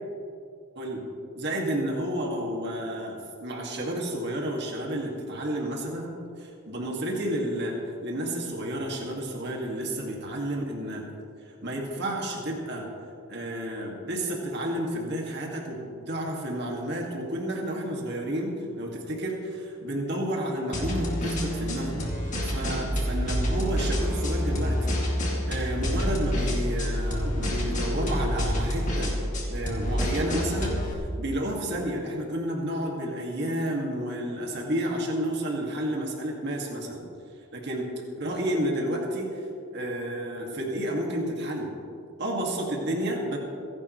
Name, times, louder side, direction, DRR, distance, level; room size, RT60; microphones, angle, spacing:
voice 1, 0.8-1.1 1.3-7.7 8.0-11.1 11.6-12.9 13.3-25.0 25.5-29.2 29.5-30.8 31.2-37.0 37.5-37.9 38.2-39.4 39.7-41.7 42.2-43.4, right 1 dB, 50° right, -1 dB, 2.2 m, -31 dB
sound 1, 20.7-30.9, equal, 35° left, 2.3 m, -28 dB
26.5 x 11.0 x 3.2 m, 2.5 s
head